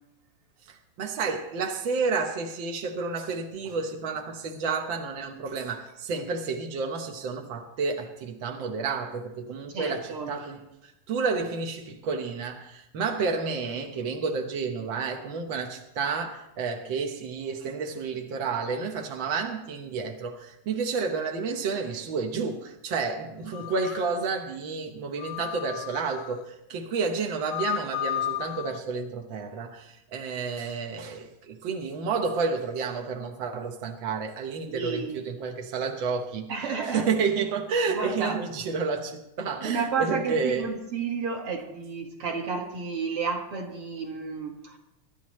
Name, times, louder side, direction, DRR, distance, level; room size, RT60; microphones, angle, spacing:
voice 1, 0.7-36.5 36.8-40.7, right 4 dB, 60° right, 2 dB, 1.2 m, -30 dB
voice 2, 9.7-10.3 34.7-35.3 36.5-37.1 37.9-38.4 39.6-44.8, right 5 dB, 45° right, 2 dB, 2.4 m, -31 dB
sound 1, 23.5-24.2 25.2-26.4 27.3-28.8, left 13 dB, 80° left, 2.1 m, -33 dB
26.0 x 12.0 x 3.2 m, 0.88 s
omnidirectional pair, 3.8 m